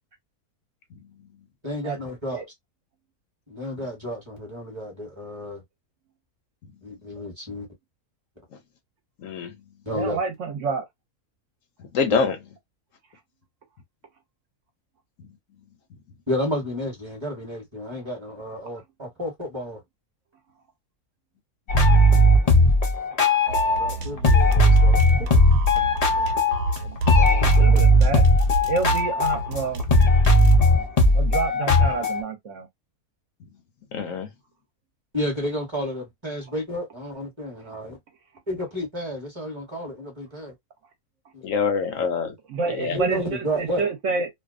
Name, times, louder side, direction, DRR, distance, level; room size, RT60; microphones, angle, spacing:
voice 1, 1.6-2.4 3.5-5.6 6.8-7.7 9.9-10.2 12.1-12.2 16.3-19.8 23.8-25.0 27.2-27.8 35.1-38.0 38.5-40.5 41.3-41.4 42.8-43.8, equal, 20° right, 1.0 m, -31 dB
voice 2, 9.2-9.6 11.9-12.4 33.9-34.3 41.4-42.3 42.7-43.0, left 5 dB, 70° left, 1.0 m, -25 dB
voice 3, 9.9-10.8 27.4-28.2 28.7-29.8 31.1-32.7 42.5-44.3, right 4 dB, 60° right, 1.0 m, -28 dB
sound 1, 21.7-23.9 24.2-26.8 27.0-32.2, left 1 dB, 50° left, 0.4 m, -17 dB
sound 2, 23.5-30.5, right 2 dB, 90° right, 1.1 m, -31 dB
2.6 x 2.2 x 2.4 m
omnidirectional pair, 1.5 m